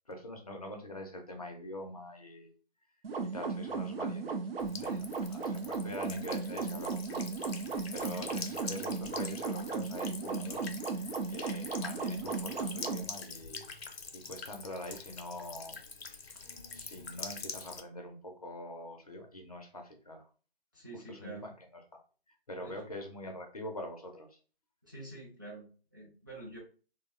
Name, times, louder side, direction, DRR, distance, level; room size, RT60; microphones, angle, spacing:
voice 1, 0.1-2.5 3.2-7.6 7.9-13.7 14.1-20.3 20.9-21.8 22.3-24.4, left 1 dB, 40° left, 2 dB, 0.4 m, -45 dB
sound 1, 3.0-13.0, right 4 dB, 75° right, 0.6 m, -36 dB
Buzz / Water tap faucet / Trickle dribble, 4.6-17.8, left 4 dB, 85° left, 0.6 m, -45 dB
voice 2, 20.7-21.4 22.6-22.7 24.8-26.6, right 2 dB, 20° right, -4 dB, 0.4 m, -47 dB
2.6 x 2.1 x 2.4 m, 0.38 s
figure-of-eight pair, 160°, 30 cm